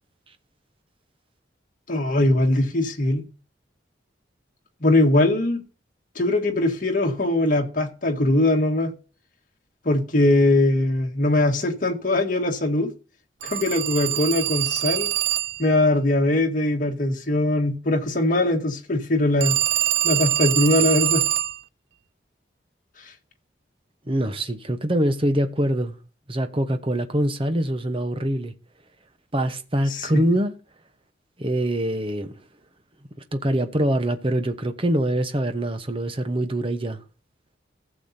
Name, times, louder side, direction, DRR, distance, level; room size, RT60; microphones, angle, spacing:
voice 1, 1.9-3.2 4.8-5.6 6.2-8.9 9.9-12.9 13.4-15.1 15.6-19.6 20.0-21.3 29.9-30.2, left 1 dB, 45° left, 1.8 m, -21 dB
Telephone, 13.4-15.7 19.4-21.6, right 13 dB, 65° right, 0.5 m, -24 dB
voice 2, 24.1-26.0 26.3-28.5 29.3-30.5 31.4-32.4 33.3-37.0, right 1 dB, 30° right, 1.0 m, -24 dB
15.5 x 7.1 x 2.8 m
head